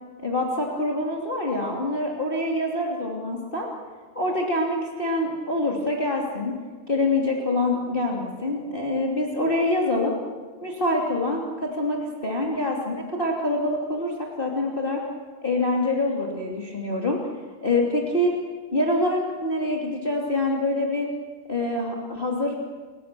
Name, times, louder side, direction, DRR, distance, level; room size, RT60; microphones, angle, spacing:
voice 1, 0.2-3.7 4.1-6.6 6.9-10.1 10.6-15.0 15.4-17.2 17.6-18.3 18.7-21.1 21.5-22.6, left 2 dB, 20° left, -2 dB, 1.3 m, -25 dB
30.0 x 21.0 x 7.0 m, 1.5 s
omnidirectional pair, 6.0 m